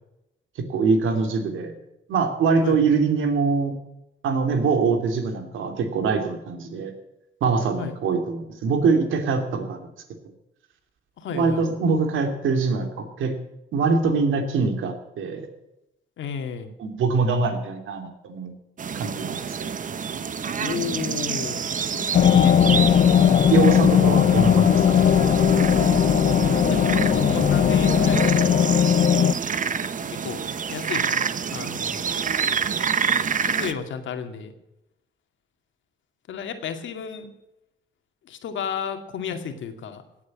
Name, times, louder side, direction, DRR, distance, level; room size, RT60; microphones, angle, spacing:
voice 1, 0.7-1.7 2.1-3.7 4.2-6.9 7.4-9.8 11.3-13.3 13.7-15.5 16.8-18.5 18.9-19.4 23.5-25.0, right 4 dB, 80° right, 6 dB, 2.7 m, -23 dB
voice 2, 11.2-11.6 16.2-16.7 20.6-22.9 26.5-28.5 30.1-30.4 30.7-32.1 33.5-34.5 36.3-37.3 38.3-40.0, left 7 dB, 70° left, 7 dB, 2.2 m, -33 dB
sound 1, 18.8-33.7, right 6 dB, 40° right, 0.9 m, -27 dB
sound 2, 22.1-29.3, left 9 dB, 50° left, 0.6 m, -18 dB
17.5 x 8.6 x 8.4 m, 0.89 s
cardioid pair, 90°, 20 cm